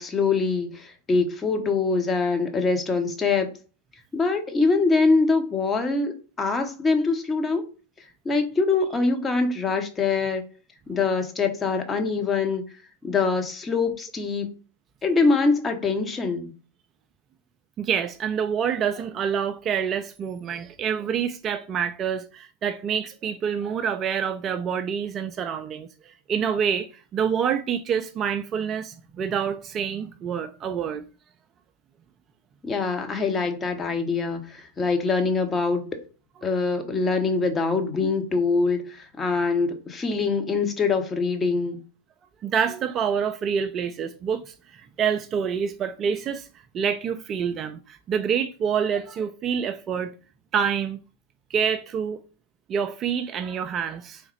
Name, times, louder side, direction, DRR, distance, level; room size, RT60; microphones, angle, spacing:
voice 1, 0.0-3.5 4.1-7.6 8.2-10.4 10.9-12.6 13.0-14.5 15.0-16.5 32.6-36.0 36.4-41.8, left 4 dB, 20° left, 0.8 m, -24 dB
voice 2, 17.8-31.0 42.4-46.5 46.7-50.1 50.5-51.0 51.5-52.2 52.7-54.2, right 7 dB, 30° right, 0.3 m, -27 dB
3.9 x 3.5 x 3.1 m
figure-of-eight pair, 90°, 0 cm